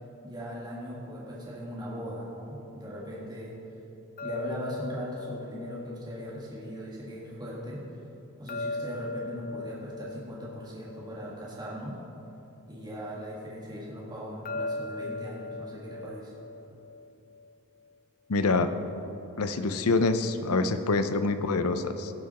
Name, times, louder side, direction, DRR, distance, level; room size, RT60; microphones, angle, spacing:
voice 1, 0.2-3.5 4.2-7.8 8.4-11.9 12.7-16.3, equal, 20° right, -6 dB, 1.7 m, -39 dB
sound 1, 4.2-7.3 8.5-12.0 14.5-17.5, left 2 dB, 40° left, 0.4 m, -39 dB
voice 2, 18.3-18.7 19.4-22.1, left 3 dB, 85° left, 10 dB, 0.6 m, -26 dB
17.0 x 5.9 x 4.2 m, 2.9 s
head